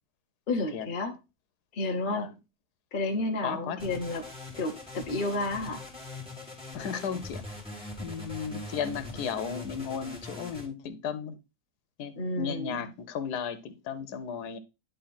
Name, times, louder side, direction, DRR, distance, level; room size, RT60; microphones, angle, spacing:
voice 1, 0.5-1.2 1.7-2.3 2.9-4.3 4.6-5.8 12.1-12.8, left 2 dB, 40° left, 1.0 m, -31 dB
voice 2, 3.4-3.8 6.7-7.4 8.0-11.4 12.0-14.6, left 7 dB, 85° left, 1.4 m, -35 dB
sound 1, 3.8-10.7, left 2 dB, 5° right, 2.1 m, -42 dB
10.0 x 3.5 x 4.2 m
omnidirectional pair, 1.7 m